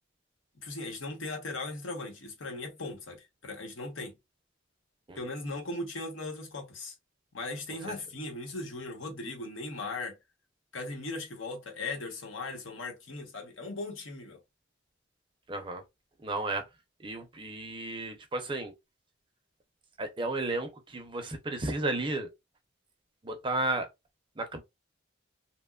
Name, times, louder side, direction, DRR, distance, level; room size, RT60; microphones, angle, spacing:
voice 1, 0.6-4.1 5.2-6.9 7.3-10.2 10.7-14.4, left 2 dB, 80° left, 1.0 m, -38 dB
voice 2, 15.5-15.8 16.2-16.6 17.0-18.7 20.0-22.3 23.2-23.9 24.4-24.6, right 2 dB, 25° right, 0.5 m, -33 dB
2.9 x 2.1 x 2.3 m
head